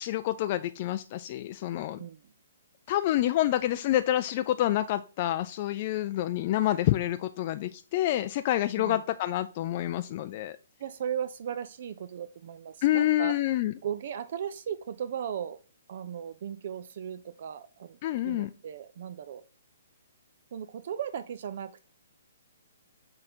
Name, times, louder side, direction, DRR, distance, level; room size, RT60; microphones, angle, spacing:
voice 1, 0.0-2.0 2.9-10.6 12.8-13.7 18.0-18.5, left 13 dB, 40° left, 10 dB, 0.3 m, -28 dB
voice 2, 2.0-2.3 8.8-9.0 10.8-13.4 13.8-15.6 15.9-19.4 20.5-21.7, right 9 dB, 50° right, 13 dB, 0.4 m, -37 dB
6.3 x 3.8 x 4.2 m, 0.36 s
figure-of-eight pair, 130°, 0 cm